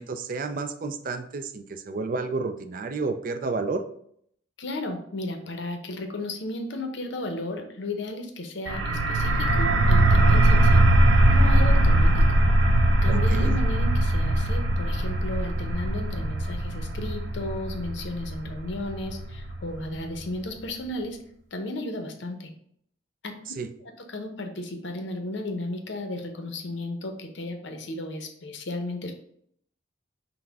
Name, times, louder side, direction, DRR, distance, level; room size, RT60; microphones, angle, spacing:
voice 1, 0.0-3.8 13.1-13.5 23.6-23.7, right 3 dB, 45° right, 9 dB, 0.4 m, -31 dB
voice 2, 4.6-10.9 11.2-12.4 13.0-21.2 21.5-22.5 23.2-23.3 23.8-29.1, left 1 dB, 75° left, 4 dB, 0.7 m, -34 dB
sound 1, 8.7-20.1, right 1 dB, 85° right, 0.7 m, -21 dB
5.8 x 2.1 x 3.4 m, 0.67 s
head